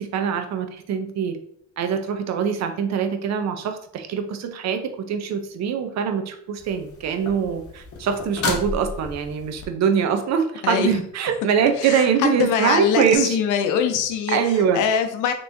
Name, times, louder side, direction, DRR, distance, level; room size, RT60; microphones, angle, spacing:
voice 1, 0.0-1.4 1.8-13.4 14.3-14.8, right 7 dB, 65° right, 7 dB, 0.5 m, -23 dB
sound 1, 6.6-9.7 13.1-13.2, left 3 dB, 50° left, 0.7 m, -32 dB
voice 2, 10.6-11.0 11.8-12.1 12.4-15.3, left 7 dB, 85° left, 7 dB, 0.5 m, -23 dB
3.2 x 3.0 x 2.6 m, 0.68 s
cardioid pair, 90°, 30 cm